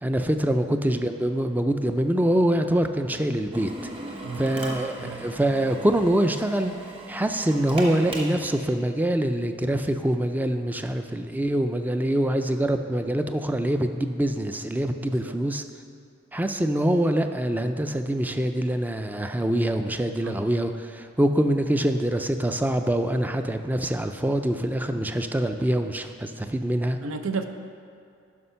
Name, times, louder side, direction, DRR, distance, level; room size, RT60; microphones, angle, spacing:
voice 1, 0.0-3.7 4.3-6.7 7.1-15.6 16.3-27.0, right 1 dB, 10° right, 7 dB, 0.4 m, -24 dB
Drill, 3.5-8.6, right 1 dB, 30° right, 1.3 m, -38 dB
voice 2, 4.2-4.5 5.0-5.3 15.2-15.3 20.2-20.4 27.0-27.5, right 4 dB, 90° right, 7 dB, 0.7 m, -32 dB
9.6 x 5.8 x 5.6 m, 2.5 s
head